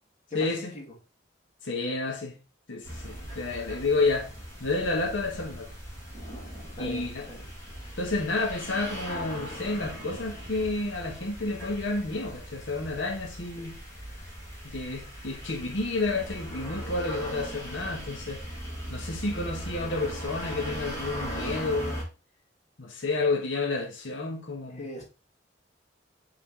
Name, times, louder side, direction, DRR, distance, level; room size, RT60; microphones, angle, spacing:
voice 1, 0.3-0.7 1.6-2.4 2.7-4.3 4.6-5.7 6.8-7.3 8.0-13.8 14.6-18.4 18.9-22.0 22.8-24.9, left 3 dB, 90° left, 1.3 m, -30 dB
sound 1, 2.8-22.0, equal, 15° left, 2.1 m, -39 dB
voice 2, 6.8-7.4 13.6-13.7 24.7-25.0, left 2 dB, 40° left, 2.3 m, -39 dB
6.8 x 3.9 x 3.8 m
head